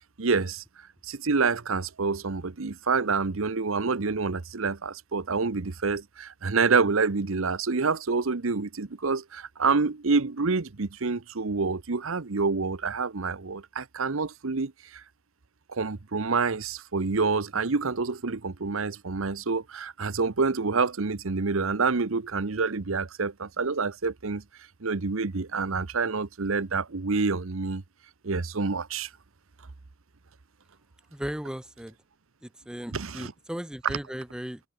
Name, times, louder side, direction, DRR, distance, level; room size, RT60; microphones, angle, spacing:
voice 1, 0.2-0.6 1.0-15.0 15.7-24.4 24.8-27.8 28.2-29.1 32.9-33.3, right 4 dB, 75° right, 0.9 m, -27 dB
voice 2, 31.1-31.9 32.4-34.6, equal, 5° right, 0.4 m, -36 dB
head